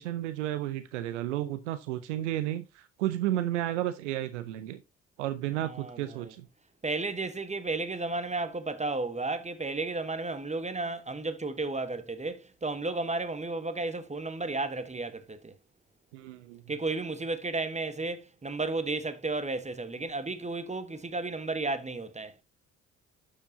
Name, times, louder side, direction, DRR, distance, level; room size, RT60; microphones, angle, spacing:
voice 1, 0.0-4.8 5.2-6.5 16.1-16.6, right 13 dB, 90° right, 0.6 m, -32 dB
voice 2, 5.6-6.3 6.8-15.5 16.7-22.3, right 3 dB, 20° right, 1.0 m, -33 dB
12.0 x 5.0 x 2.7 m
hypercardioid pair, 45°, 35 cm